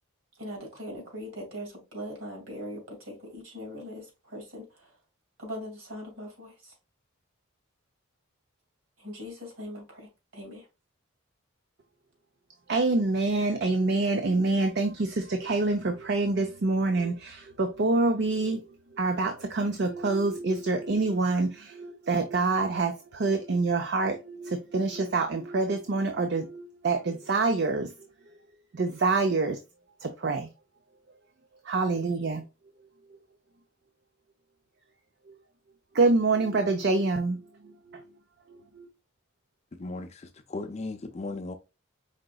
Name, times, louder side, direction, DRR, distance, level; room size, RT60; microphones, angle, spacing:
voice 1, 0.4-4.9 5.4-6.7 9.0-10.6, equal, 70° right, 2.5 m, -41 dB
voice 2, 12.7-28.1 28.7-29.6 30.0-30.5 31.7-32.4 35.3-35.4 35.9-38.0 38.8-38.9, right 3 dB, 50° right, 0.5 m, -26 dB
voice 3, 39.7-41.5, left 2 dB, 30° left, 0.4 m, -37 dB
5.0 x 3.8 x 2.3 m
head